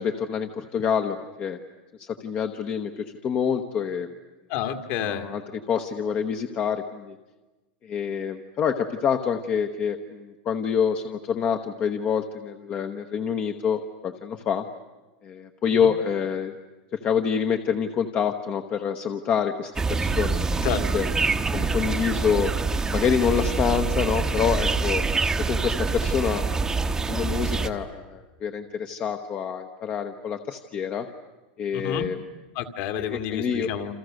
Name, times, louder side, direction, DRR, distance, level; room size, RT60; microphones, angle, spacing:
voice 1, 0.0-1.6 2.0-4.1 5.0-7.2 7.8-14.6 15.2-16.5 16.9-20.5 20.9-21.1 21.5-22.5 22.9-25.0 25.4-31.1 31.6-32.2 33.0-33.7, left 7 dB, 25° left, 7 dB, 1.1 m, -27 dB
voice 2, 4.5-5.3 15.8-15.9 20.6-20.8 31.7-32.1 32.6-33.9, left 9 dB, 45° left, 8 dB, 2.1 m, -29 dB
sound 1, 19.7-27.7, right 4 dB, 10° right, 1.1 m, -25 dB
28.5 x 27.5 x 6.5 m, 1.1 s
supercardioid pair, 155°, 6 cm